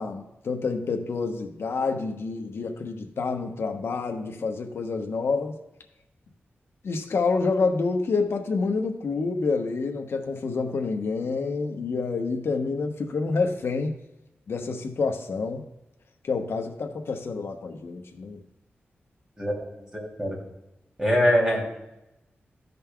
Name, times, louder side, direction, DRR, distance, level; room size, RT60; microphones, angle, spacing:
voice 1, 0.0-5.5 6.8-13.9 14.5-15.6 16.2-18.4, left 4 dB, 75° left, 3 dB, 0.9 m, -28 dB
voice 2, 19.9-20.4 21.0-21.6, equal, 15° right, -3 dB, 2.8 m, -22 dB
15.5 x 5.4 x 2.3 m, 0.92 s
wide cardioid pair, 95°, 4 cm